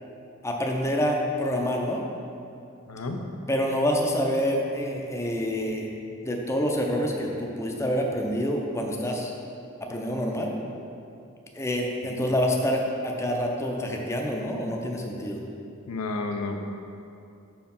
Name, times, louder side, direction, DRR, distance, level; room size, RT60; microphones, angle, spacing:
voice 1, 0.4-2.0 3.5-5.9 6.2-9.3 9.9-10.5 11.5-15.4, equal, 15° left, 0 dB, 0.6 m, -27 dB
voice 2, 2.9-3.2 12.2-12.3 15.9-16.7, left 3 dB, 85° left, 4 dB, 0.6 m, -31 dB
6.3 x 4.7 x 5.3 m, 2.6 s
head